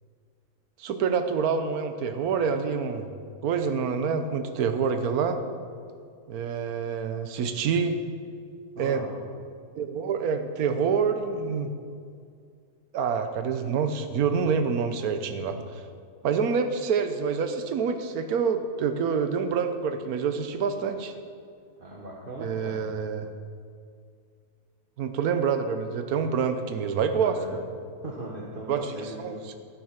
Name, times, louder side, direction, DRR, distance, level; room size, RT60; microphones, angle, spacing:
voice 1, 0.8-3.1 3.4-5.4 6.3-8.0 8.8-9.0 9.7-11.7 12.9-15.6 16.2-21.1 22.4-23.3 25.0-27.6 28.7-28.8 29.2-29.5, right 6 dB, 70° right, 8 dB, 1.4 m, -27 dB
voice 2, 8.7-9.2 21.8-22.8 27.1-27.6 28.0-29.4, right 2 dB, 35° right, -4 dB, 1.5 m, -38 dB
12.5 x 9.8 x 5.9 m, 2.2 s
omnidirectional pair, 1.6 m